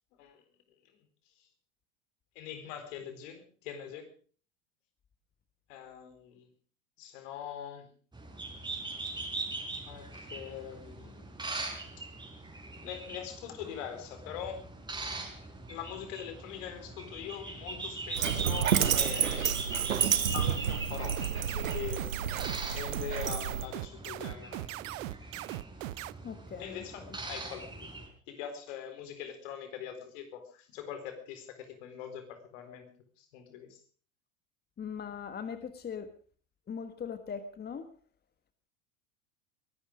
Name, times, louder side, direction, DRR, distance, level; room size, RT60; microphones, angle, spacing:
voice 1, 2.4-4.1 5.7-6.5 7.0-7.9 9.9-11.3 12.8-14.7 15.4-19.6 20.3-22.2 22.7-24.7 26.6-33.8, left 9 dB, 65° left, 8 dB, 4.2 m, -43 dB
sound 1, 8.1-28.1, right 3 dB, 10° right, 4.9 m, -41 dB
Dog, 18.1-23.7, right 8 dB, 90° right, 1.3 m, -30 dB
sound 2, 21.2-26.1, right 18 dB, 70° right, 0.6 m, -39 dB
voice 2, 26.2-26.8 34.8-36.1 36.7-37.9, left 6 dB, 25° left, 10 dB, 1.5 m, -40 dB
22.5 x 11.5 x 5.0 m, 0.43 s
hypercardioid pair, 85°, 40 cm